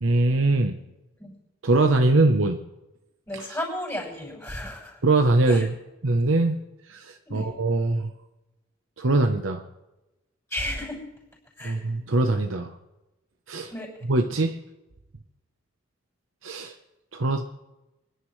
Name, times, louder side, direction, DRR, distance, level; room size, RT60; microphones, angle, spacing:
voice 1, 0.0-0.8 1.6-2.6 3.3-3.6 5.0-5.8 6.0-6.6 6.9-8.1 9.0-9.6 11.6-12.7 13.5-13.7 14.1-14.5 16.4-16.7 17.1-17.4, right 2 dB, 80° right, 5 dB, 0.9 m, -22 dB
voice 2, 3.3-5.0 5.5-5.6 7.3-7.5 10.5-11.0 11.6-11.8 13.7-13.9, left 1 dB, 15° left, -6 dB, 6.6 m, -33 dB
26.5 x 11.0 x 3.3 m, 0.98 s
head